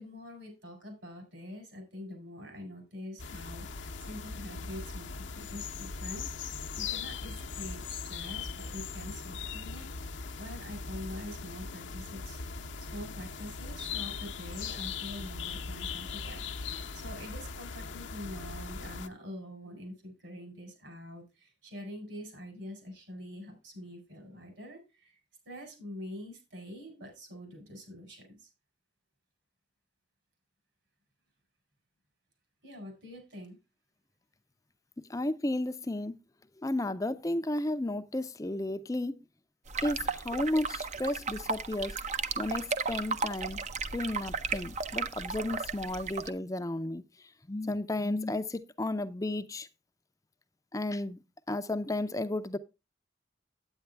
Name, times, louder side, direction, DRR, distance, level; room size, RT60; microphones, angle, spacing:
voice 1, 0.0-12.4 12.9-25.2 25.5-28.5 32.6-33.6, left 1 dB, 70° right, 4.3 m, -45 dB
sound 1, 3.2-19.1, left 5 dB, 70° left, 0.8 m, -39 dB
voice 2, 35.0-36.2 36.6-39.2 39.8-42.0 42.4-43.6 43.9-47.0 47.5-49.7 50.7-51.2 51.5-52.6, left 1 dB, 15° left, 0.5 m, -33 dB
sound 2, 39.7-46.3, right 5 dB, 35° right, 0.6 m, -35 dB
9.0 x 9.0 x 3.4 m
head